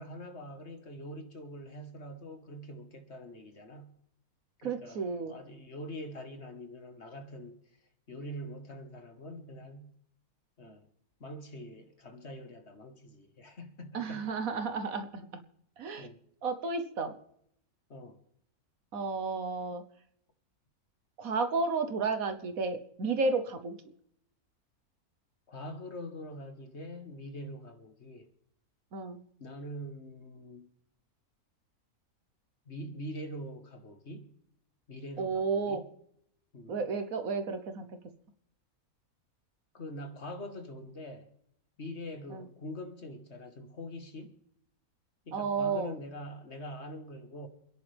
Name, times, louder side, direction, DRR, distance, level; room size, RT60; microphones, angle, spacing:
voice 1, 0.0-3.9 4.6-7.6 8.1-9.9 10.6-10.9 11.2-14.3 16.0-16.2 17.9-18.2 25.5-28.3 29.4-30.7 32.7-34.3 34.9-35.9 36.5-36.8 39.7-41.3 41.8-44.4 45.3-47.5, equal, 45° left, 1.8 m, -44 dB
voice 2, 4.6-5.4 13.9-15.4 15.8-16.1 16.4-17.1 18.9-19.8 21.2-23.8 28.9-29.2 35.2-35.8 36.7-37.9 42.3-42.4 45.3-45.9, right 4 dB, 65° right, 1.5 m, -32 dB
27.5 x 10.5 x 3.5 m
omnidirectional pair, 1.6 m